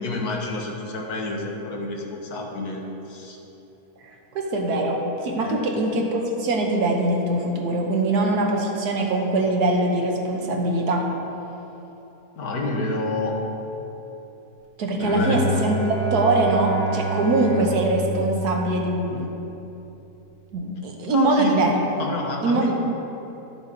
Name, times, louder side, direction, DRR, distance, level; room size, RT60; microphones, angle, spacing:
voice 1, 0.0-2.8 3.1-3.4 5.4-5.6 12.4-13.4 15.1-15.4 21.1-21.7 22.0-22.7, left 2 dB, 75° left, 0 dB, 1.6 m, -29 dB
voice 2, 4.0-11.1 14.8-19.3 20.5-21.8 22.4-22.7, right 2 dB, 85° right, 1 dB, 1.6 m, -22 dB
Bowed string instrument, 15.0-19.1, right 1 dB, 35° left, 0.8 m, -28 dB
11.5 x 7.0 x 3.9 m, 3.0 s
omnidirectional pair, 1.6 m